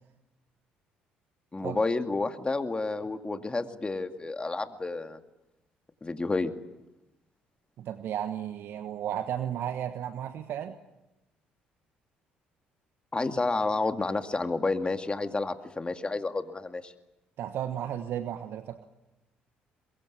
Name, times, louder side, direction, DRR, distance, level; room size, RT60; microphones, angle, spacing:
voice 1, 1.5-5.2 6.0-6.5 13.1-16.9, left 3 dB, 25° left, 7 dB, 2.3 m, -30 dB
voice 2, 7.8-10.8 17.4-18.8, right 10 dB, 60° right, 9 dB, 1.3 m, -34 dB
23.0 x 22.5 x 9.7 m, 0.98 s
hypercardioid pair, 55°, 4 cm